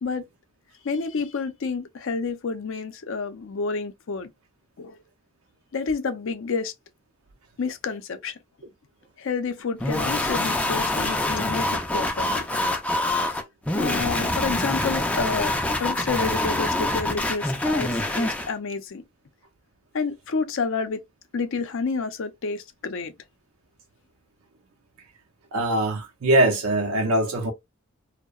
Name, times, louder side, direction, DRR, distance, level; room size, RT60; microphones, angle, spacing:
voice 1, 0.8-4.3 4.8-5.0 5.7-6.7 7.6-8.4 9.2-12.4 13.7-15.5 15.8-19.0 19.9-21.0 21.3-23.1, left 4 dB, 60° left, 0.5 m, -29 dB
sound 1, 9.8-18.5, left 2 dB, 5° left, 0.3 m, -25 dB
voice 2, 25.5-27.5, right 1 dB, 80° right, 0.5 m, -22 dB
2.7 x 2.0 x 2.3 m
head